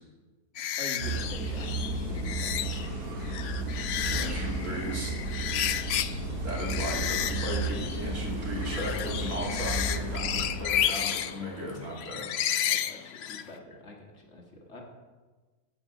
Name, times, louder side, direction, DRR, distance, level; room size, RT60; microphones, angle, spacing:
sound 1, 0.6-2.9 3.2-6.3 6.5-13.6, left 10 dB, 75° left, 0.6 m, -32 dB
voice 1, 0.8-2.9 3.3-3.5 12.7-14.8, left 2 dB, 50° left, 0 dB, 1.7 m, -44 dB
sound 2, 1.0-10.5, right 2 dB, 75° right, 2.2 m, -33 dB
voice 2, 3.9-5.1 6.4-12.3, equal, 55° right, -3 dB, 3.0 m, -36 dB
15.5 x 5.3 x 6.0 m, 1.3 s
omnidirectional pair, 1.7 m